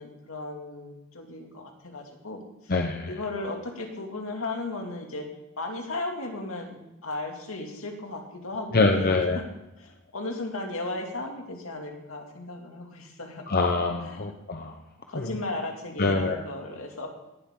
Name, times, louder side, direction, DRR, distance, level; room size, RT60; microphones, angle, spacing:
voice 1, 0.0-2.7 3.1-5.3 5.6-9.4 9.8-13.4 14.0-14.3 15.1-17.1, left 2 dB, 75° left, 2 dB, 2.5 m, -35 dB
voice 2, 2.7-3.1 8.7-9.4 13.5-14.7 15.1-15.3 16.0-16.4, left 3 dB, 45° left, 4 dB, 0.9 m, -24 dB
18.0 x 11.5 x 3.8 m, 0.97 s
head